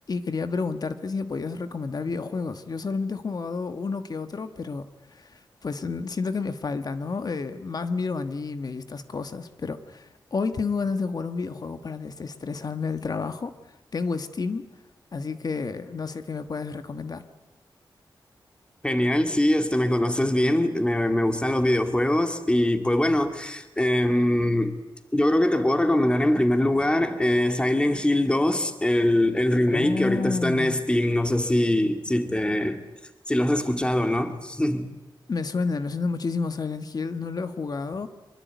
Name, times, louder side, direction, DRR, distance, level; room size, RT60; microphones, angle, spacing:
voice 1, 0.1-14.7 15.1-17.2 29.7-30.8 35.3-38.1, left 4 dB, 50° left, 1.4 m, -30 dB
voice 2, 18.8-24.8 25.1-32.8 33.3-34.9, left 1 dB, 10° left, 2.3 m, -22 dB
24.5 x 23.0 x 9.3 m
wide cardioid pair, 125°, 8 cm